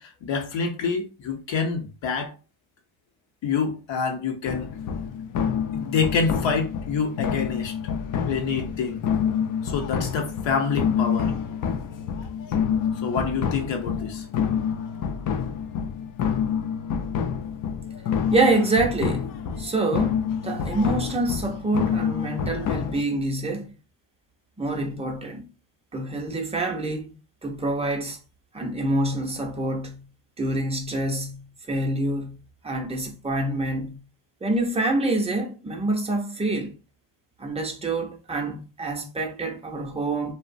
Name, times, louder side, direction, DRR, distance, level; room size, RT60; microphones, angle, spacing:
voice 1, 0.0-2.3 3.4-4.7 5.7-7.7 8.3-9.0 9.6-11.3 13.0-14.3, left 5 dB, 70° left, 0.8 m, -27 dB
sound 1, 4.5-23.0, left 7 dB, 45° left, 0.4 m, -27 dB
voice 2, 18.3-19.3 19.6-23.8 24.6-25.5 25.9-27.1 27.4-28.2 28.5-30.1 30.4-34.0 34.4-36.7 37.4-40.3, right 2 dB, 15° right, 0.5 m, -26 dB
2.8 x 2.1 x 2.5 m
cardioid pair, 95°, 47 cm